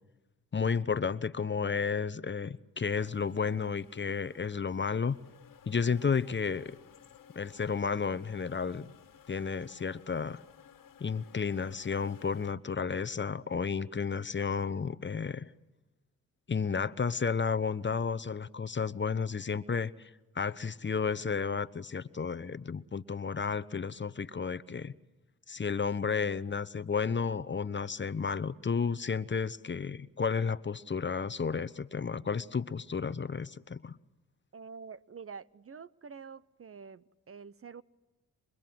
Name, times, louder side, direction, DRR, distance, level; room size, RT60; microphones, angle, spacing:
voice 1, 0.5-5.2 5.7-6.7 7.3-8.9 9.3-10.4 11.0-15.5 16.5-20.1 20.3-24.9 25.5-34.0, left 5 dB, 30° left, 0.9 m, -32 dB
sound 1, 3.0-12.5, left 8 dB, 65° left, 1.7 m, -57 dB
voice 2, 34.5-37.8, right 5 dB, 40° right, 0.8 m, -47 dB
28.0 x 24.5 x 7.8 m
supercardioid pair, 55°, 35 cm